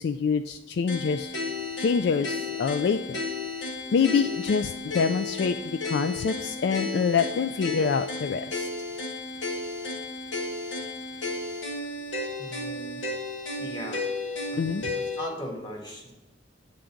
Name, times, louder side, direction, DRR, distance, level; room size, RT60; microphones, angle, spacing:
voice 1, 0.0-1.3 1.8-3.2 3.9-8.7 14.6-14.9, left 5 dB, 60° left, 10 dB, 0.3 m, -26 dB
sound 1, 0.9-15.3, left 3 dB, 85° left, 1.3 m, -33 dB
voice 2, 12.4-13.2 13.6-14.0 14.5-14.6 14.9-16.1, equal, 25° left, -1 dB, 1.7 m, -38 dB
8.8 x 3.8 x 7.0 m, 1.1 s
head